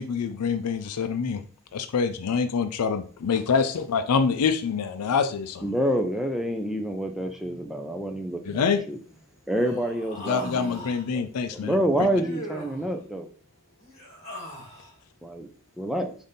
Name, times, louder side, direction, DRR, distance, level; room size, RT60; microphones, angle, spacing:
voice 1, 0.0-1.4 1.7-5.7 8.5-8.8 10.3-11.8, left 5 dB, 90° left, 9 dB, 0.4 m, -26 dB
voice 2, 5.6-9.0 9.5-10.9 11.1-13.3 15.2-15.5 15.8-16.2, equal, ahead, 4 dB, 0.3 m, -28 dB
Human voice, 9.5-11.0 12.0-12.9 13.8-15.0, equal, 30° left, 1.6 m, -40 dB
voice 3, 10.1-10.8 13.4-15.8, left 2 dB, 60° left, 4 dB, 1.0 m, -62 dB
5.1 x 2.6 x 3.9 m, 0.43 s
head